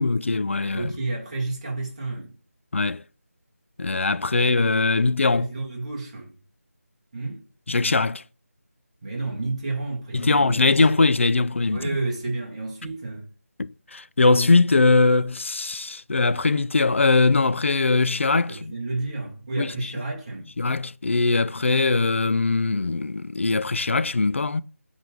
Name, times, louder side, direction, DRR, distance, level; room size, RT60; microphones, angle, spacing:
voice 1, 0.0-0.9 2.7-3.0 3.8-5.5 7.7-8.2 10.1-12.0 13.6-18.7 19.6-19.9 20.6-24.6, left 3 dB, 55° left, 0.4 m, -21 dB
voice 2, 0.7-2.3 5.3-6.3 7.1-7.4 9.0-10.8 11.7-13.3 18.5-20.5, right 2 dB, 25° right, 1.9 m, -31 dB
9.2 x 3.7 x 3.5 m
figure-of-eight pair, 175°, 8 cm